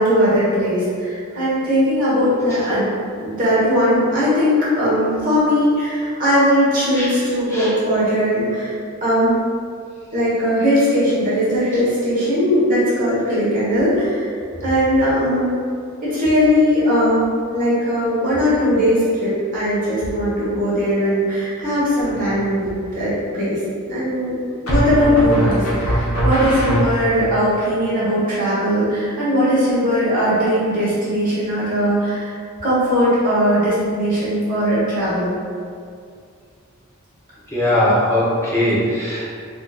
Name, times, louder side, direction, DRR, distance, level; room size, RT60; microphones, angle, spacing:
voice 1, 0.0-2.9 3.2-8.7 9.0-9.4 10.1-14.3 14.6-15.6 16.0-23.6 23.9-24.3 24.6-35.3, equal, 40° right, -10 dB, 1.1 m, -19 dB
sound 1, 22.0-22.5 24.7-27.3, right 1 dB, 80° left, 0.9 m, -21 dB
voice 2, 37.5-39.4, left 1 dB, 10° left, -8 dB, 0.6 m, -19 dB
3.9 x 2.5 x 2.3 m, 2.3 s
head